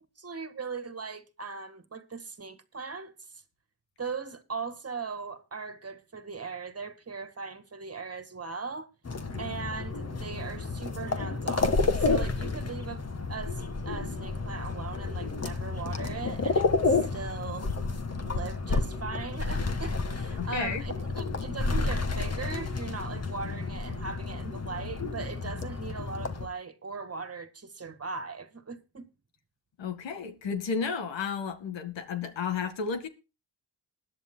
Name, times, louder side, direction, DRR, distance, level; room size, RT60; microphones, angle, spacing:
voice 1, 0.2-3.1 4.0-8.9 9.4-17.7 18.3-29.1, right 4 dB, 35° right, 1.8 m, -39 dB
sound 1, 9.1-26.5, left 3 dB, 35° left, 1.7 m, -30 dB
voice 2, 20.4-20.8 29.8-33.1, left 5 dB, 80° left, 2.1 m, -32 dB
20.5 x 10.5 x 2.2 m
cardioid pair, 75°, 44 cm